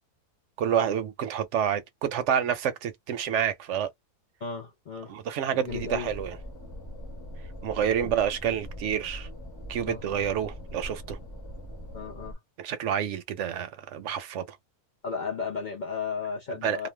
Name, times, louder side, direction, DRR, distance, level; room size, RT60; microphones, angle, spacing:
voice 1, 0.6-3.9 5.1-6.4 7.6-9.3 9.7-11.2 12.6-14.6 16.6-16.8, right 9 dB, 65° right, 0.8 m, -28 dB
voice 2, 4.4-5.1 5.5-6.2 8.0-8.1 9.9-10.0 11.9-12.4 15.0-16.9, left 5 dB, 75° left, 0.4 m, -34 dB
sound 1, 5.7-12.3, equal, 20° left, 0.8 m, -41 dB
2.5 x 2.1 x 3.2 m
omnidirectional pair, 1.6 m